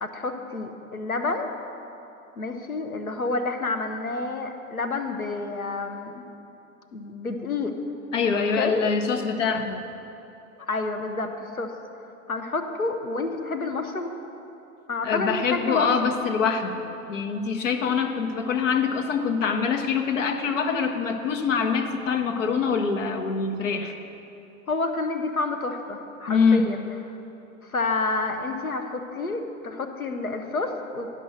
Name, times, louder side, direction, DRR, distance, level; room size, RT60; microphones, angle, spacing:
voice 1, 0.0-1.5 2.4-6.2 6.9-7.7 8.6-8.8 10.7-11.7 12.3-14.2 14.9-16.2 24.7-26.8 27.6-31.1, left 3 dB, 85° left, 5 dB, 0.8 m, -29 dB
voice 2, 8.1-9.8 15.0-23.9 26.3-26.7, left 5 dB, 60° left, 5 dB, 0.9 m, -24 dB
11.5 x 5.4 x 6.4 m, 2.9 s
figure-of-eight pair, 85°, 42 cm